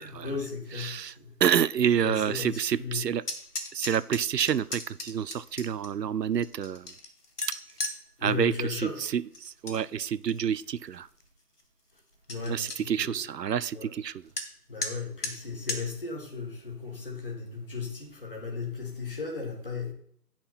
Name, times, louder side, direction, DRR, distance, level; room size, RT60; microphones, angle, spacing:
voice 1, 0.0-1.3 2.0-3.1 8.2-9.0 12.3-13.3 13.7-14.0 14.7-19.9, left 4 dB, 35° left, 1.8 m, -36 dB
voice 2, 0.8-1.1 1.4-3.2 3.7-6.9 8.2-11.1 12.5-14.1, right 8 dB, 80° right, 0.5 m, -28 dB
sound 1, 3.2-5.9 6.4-8.0 9.3-9.8 10.2-10.6 11.2-11.3 11.6-11.7 12.0-12.1 12.3-12.8 14.4-14.5 14.8-14.9 15.2-15.3 15.7-15.8, left 2 dB, 70° left, 1.6 m, -35 dB
8.8 x 5.9 x 4.2 m
figure-of-eight pair, 160°, 48 cm